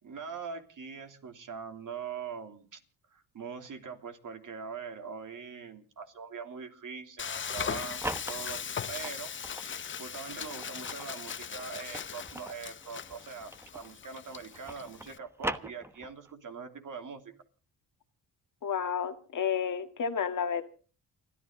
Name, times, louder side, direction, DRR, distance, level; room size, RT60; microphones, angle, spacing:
voice 1, 0.0-2.8 3.1-8.6 8.9-17.3, right 6 dB, 55° right, 3.1 m, -42 dB
Frying (food), 7.2-15.2, left 7 dB, 30° left, 0.7 m, -39 dB
sound 1, 7.8-9.7 10.3-14.0 14.3-16.3, right 1 dB, 5° right, 1.1 m, -41 dB
voice 2, 18.6-20.6, left 7 dB, 50° left, 2.0 m, -31 dB
30.0 x 10.5 x 3.9 m
cardioid pair, 75°, 39 cm